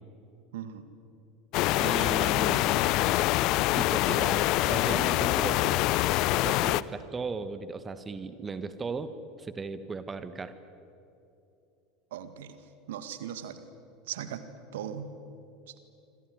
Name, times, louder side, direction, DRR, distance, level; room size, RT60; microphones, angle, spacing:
voice 1, 0.5-0.9 12.1-12.6 12.9-13.6 14.1-14.4 14.7-15.2 15.7-15.8, right 9 dB, 65° right, 11 dB, 1.9 m, -38 dB
sound 1, 1.5-6.8, left 17 dB, 50° left, 0.6 m, -25 dB
voice 2, 1.7-2.9 3.7-5.8 6.3-9.1 9.4-10.5, right 4 dB, 20° right, 12 dB, 1.6 m, -36 dB
27.0 x 26.0 x 8.0 m, 2.7 s
figure-of-eight pair, 75°, 0 cm